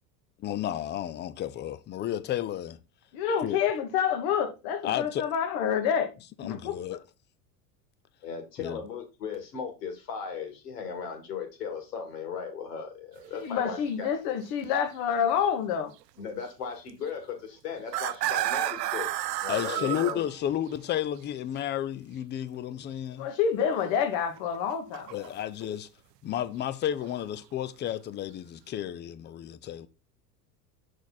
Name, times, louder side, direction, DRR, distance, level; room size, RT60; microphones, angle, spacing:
voice 1, 0.4-2.8 3.4-3.6 4.8-5.3 6.4-7.0 8.6-8.8 19.5-23.3 25.1-25.9 26.2-29.9, left 11 dB, 25° left, 0.4 m, -32 dB
voice 2, 3.1-6.1 6.4-6.7 13.4-15.9 23.2-25.3, left 7 dB, 55° left, 1.5 m, -28 dB
voice 3, 8.2-14.1 16.2-19.1 19.4-20.2, left 6 dB, 75° left, 2.3 m, -37 dB
sound 1, 13.2-13.3 13.7-13.9 14.4-14.5 16.4-16.5 17.8-21.0 24.1-25.6 26.9-27.2, right 14 dB, 75° right, 0.6 m, -32 dB
6.3 x 4.6 x 4.1 m
hypercardioid pair, 80°, 49 cm